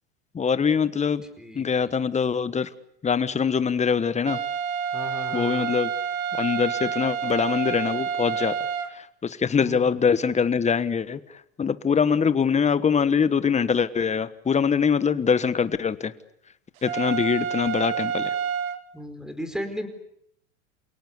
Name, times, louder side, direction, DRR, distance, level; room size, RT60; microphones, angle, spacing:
voice 1, 0.3-1.2 1.5-2.7 3.0-4.4 5.3-5.9 6.4-8.6 9.0-11.2 11.6-16.1 16.8-18.4, left 6 dB, 15° left, 14 dB, 1.4 m, -23 dB
voice 2, 1.4-2.0 4.9-5.7 9.5-10.1 18.9-19.9, equal, ahead, 10 dB, 4.8 m, -36 dB
sound 1, 4.3-8.9 16.9-18.8, right 7 dB, 80° right, 2.2 m, -28 dB
28.5 x 18.0 x 9.7 m, 0.73 s
supercardioid pair, 115°, 40 cm